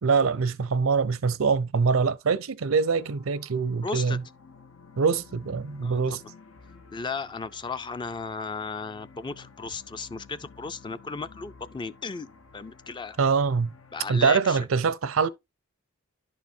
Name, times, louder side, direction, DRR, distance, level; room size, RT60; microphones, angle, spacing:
voice 1, 0.0-4.2 5.0-6.2 13.2-13.7 14.1-15.3, right 5 dB, 90° right, 0.6 m, -24 dB
sound 1, 2.6-14.3, left 4 dB, 90° left, 0.9 m, -53 dB
voice 2, 3.8-4.2 5.8-6.2 6.9-13.2 13.9-14.6, left 4 dB, 25° left, 0.4 m, -35 dB
11.0 x 4.6 x 2.6 m
head